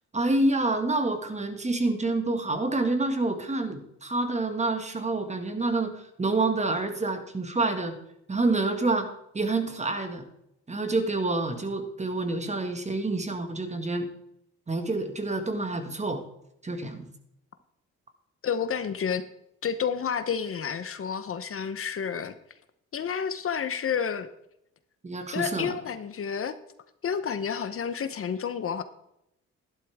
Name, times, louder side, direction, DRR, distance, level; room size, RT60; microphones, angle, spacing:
voice 1, 0.1-8.0 8.3-9.1 9.3-10.3 10.7-14.1 14.7-16.2 16.6-17.1 25.0-25.7, right 2 dB, 25° right, 7 dB, 1.9 m, -27 dB
voice 2, 18.4-19.2 19.6-22.3 22.9-24.3 25.3-26.5 27.0-28.8, left 7 dB, 45° left, 11 dB, 0.9 m, -30 dB
11.5 x 11.5 x 3.6 m, 0.79 s
cardioid pair, 90°, 30 cm